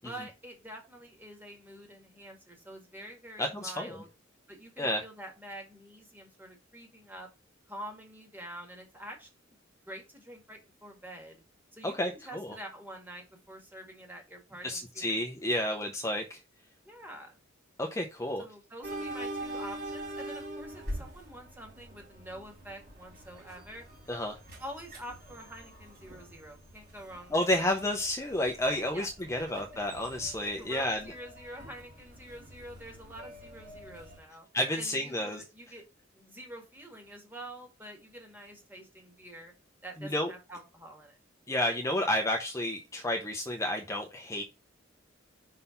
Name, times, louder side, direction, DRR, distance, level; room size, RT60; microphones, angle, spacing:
voice 1, 0.0-4.1 4.5-7.3 7.7-9.6 9.9-11.4 11.7-15.6 16.8-17.4 18.4-23.9 24.6-27.5 28.9-29.1 29.4-29.5 30.6-34.5 34.7-35.8 36.1-39.5 39.8-41.2, right 1 dB, 10° right, 2 dB, 1.9 m, -47 dB
voice 2, 3.4-4.0 4.8-5.0 11.8-12.5 14.6-16.4 17.8-18.4 24.1-24.4 27.3-31.0 34.5-35.4 40.0-40.3 41.5-44.4, left 1 dB, 15° left, 2 dB, 0.7 m, -31 dB
sound 1, 18.8-34.2, right 1 dB, 50° right, 3.9 m, -44 dB
5.4 x 4.0 x 5.6 m, 0.27 s
head